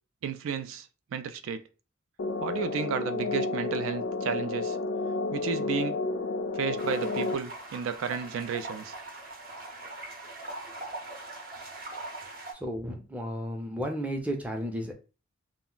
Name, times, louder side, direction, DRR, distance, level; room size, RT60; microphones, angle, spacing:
voice 1, 0.2-1.6 2.4-4.8 5.3-6.0 6.5-8.9, right 6 dB, 85° right, 0.3 m, -33 dB
sound 1, 2.2-7.3, left 3 dB, 60° left, 0.3 m, -31 dB
sound 2, 6.8-12.5, right 2 dB, 45° right, 0.6 m, -41 dB
voice 2, 12.6-14.9, equal, 5° right, 0.4 m, -33 dB
2.3 x 2.1 x 3.7 m
head